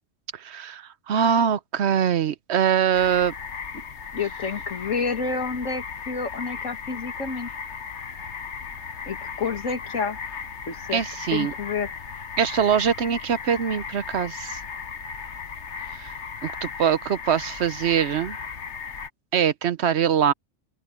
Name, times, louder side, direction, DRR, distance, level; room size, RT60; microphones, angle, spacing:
voice 1, 0.4-3.3 10.9-11.5 12.4-14.6 15.9-16.1 16.4-18.4 19.3-20.3, right 8 dB, 65° right, 1.0 m, -23 dB
sound 1, 2.9-19.1, left 6 dB, 65° left, 1.6 m, -36 dB
voice 2, 4.1-7.5 9.1-10.2 10.7-11.0 11.3-11.9, left 5 dB, 85° left, 2.3 m, -29 dB
open air
omnidirectional pair, 1.3 m